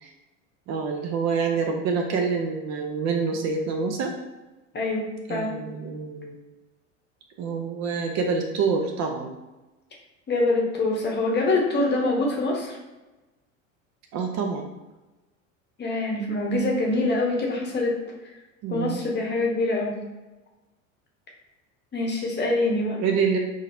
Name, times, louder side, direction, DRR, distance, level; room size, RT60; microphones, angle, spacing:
voice 1, 0.7-4.1 5.3-6.4 7.4-9.4 14.1-14.7 18.6-19.0 23.0-23.4, right 5 dB, 45° right, 3 dB, 0.6 m, -26 dB
voice 2, 4.7-5.5 10.3-12.8 15.8-17.9 18.7-20.0 21.9-23.0, left 2 dB, 25° left, -1 dB, 1.0 m, -25 dB
3.7 x 3.2 x 2.7 m, 1.1 s
hypercardioid pair, 80°, 39 cm